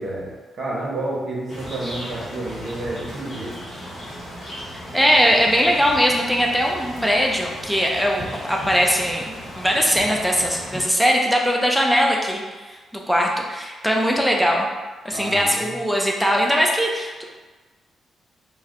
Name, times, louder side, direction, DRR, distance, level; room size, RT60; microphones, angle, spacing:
voice 1, 0.0-3.6 15.1-15.7, right 2 dB, 55° right, -4 dB, 0.8 m, -30 dB
sound 1, 1.5-10.8, equal, 30° left, 1.0 m, -36 dB
voice 2, 4.9-12.8 13.1-14.7 15.0-17.2, equal, ahead, 0 dB, 0.4 m, -20 dB
4.1 x 2.1 x 2.4 m, 1.3 s
cardioid pair, 125°, 0 cm